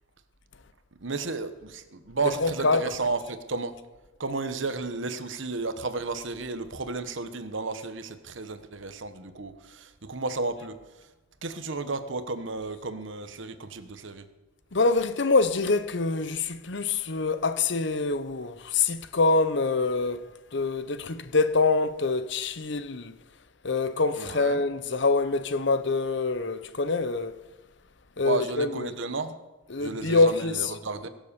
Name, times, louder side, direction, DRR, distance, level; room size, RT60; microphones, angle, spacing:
voice 1, 1.0-3.7 4.2-10.8 11.4-14.2 24.2-24.6 28.2-29.4 29.8-31.1, right 3 dB, 60° right, 1.1 m, -33 dB
voice 2, 2.2-3.0 14.7-20.2 20.5-23.1 23.6-27.4 28.2-28.9 29.7-30.8, left 3 dB, 55° left, 0.9 m, -25 dB
22.0 x 7.5 x 6.9 m
head